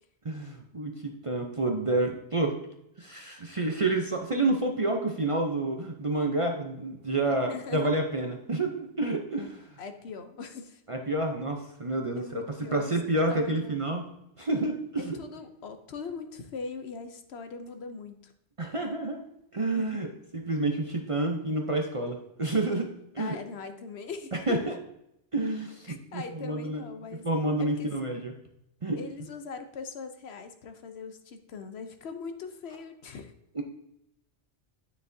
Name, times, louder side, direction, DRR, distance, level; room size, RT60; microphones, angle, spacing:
voice 1, 0.2-2.6 3.0-9.7 10.9-12.4 12.7-14.0 14.4-15.2 18.6-19.2 19.5-20.1 20.3-23.4 24.5-24.7 25.3-26.8 27.2-28.3 28.8-29.0 33.5-33.6, right 2 dB, 35° right, 2 dB, 0.6 m, -29 dB
voice 2, 7.5-8.0 9.8-10.8 12.1-12.9 13.3-13.9 15.0-18.3 19.7-20.1 23.2-24.7 25.9-27.2 27.6-27.9 29.0-33.3, left 5 dB, 65° left, 8 dB, 0.9 m, -41 dB
9.4 x 6.5 x 2.7 m, 0.82 s
omnidirectional pair, 1.2 m